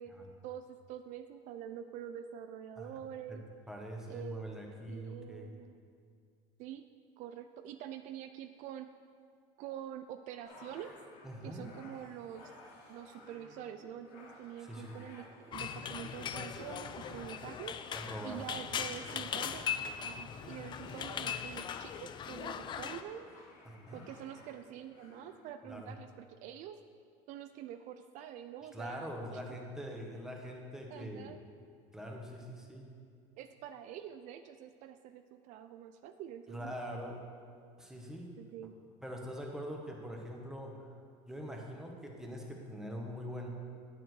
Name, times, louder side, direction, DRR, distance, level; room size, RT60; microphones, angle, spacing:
voice 1, 0.4-3.4 4.1-4.5 4.9-5.8 6.6-6.9 7.2-8.9 9.6-11.0 11.4-12.5 12.9-23.3 23.9-26.8 27.3-29.1 29.5-29.6 30.9-31.4 33.4-36.7 38.4-38.8, right 10 dB, 60° right, 9 dB, 0.4 m, -46 dB
voice 2, 3.7-5.5 11.2-11.8 14.7-15.0 18.1-18.5 19.1-19.2 23.6-24.1 25.6-25.9 28.7-31.3 31.9-32.9 36.5-37.2 37.8-38.3 39.0-40.9 41.2-43.5, equal, 5° right, 0 dB, 1.4 m, -43 dB
sound 1, 10.4-25.4, left 2 dB, 70° left, 2.5 m, -56 dB
sound 2, 15.5-23.0, left 8 dB, 35° left, 0.4 m, -39 dB
8.9 x 8.7 x 4.7 m, 2.2 s
supercardioid pair, 120°, 14 cm